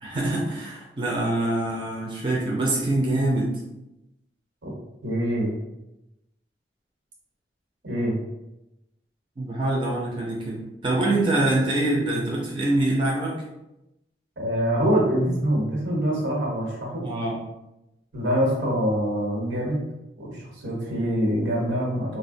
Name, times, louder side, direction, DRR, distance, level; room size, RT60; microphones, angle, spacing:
voice 1, 0.0-3.5 9.4-13.3 17.0-17.4, right 2 dB, 25° right, -3 dB, 0.4 m, -25 dB
voice 2, 5.0-5.5 7.8-8.2 14.4-17.1 18.1-19.9 20.2-22.2, equal, 85° right, -3 dB, 1.0 m, -25 dB
3.3 x 2.1 x 2.5 m, 0.91 s
head